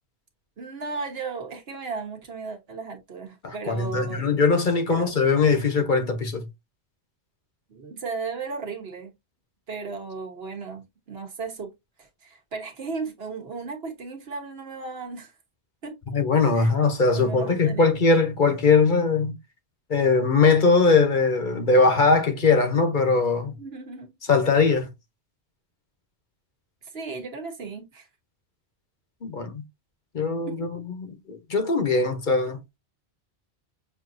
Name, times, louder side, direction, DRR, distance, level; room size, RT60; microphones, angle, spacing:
voice 1, 0.6-4.3 4.9-5.1 7.7-9.1 9.7-11.7 12.0-15.3 15.8-16.0 16.5-16.7 17.1-17.9 23.6-24.1 26.9-28.1 30.5-30.8, right 4 dB, 65° right, 1.4 m, -35 dB
voice 2, 3.4-6.4 16.1-19.4 19.9-23.5 24.3-24.9 29.2-29.6 30.1-30.7 31.3-32.6, left 4 dB, 50° left, 0.9 m, -21 dB
6.2 x 2.7 x 2.5 m
omnidirectional pair, 1.1 m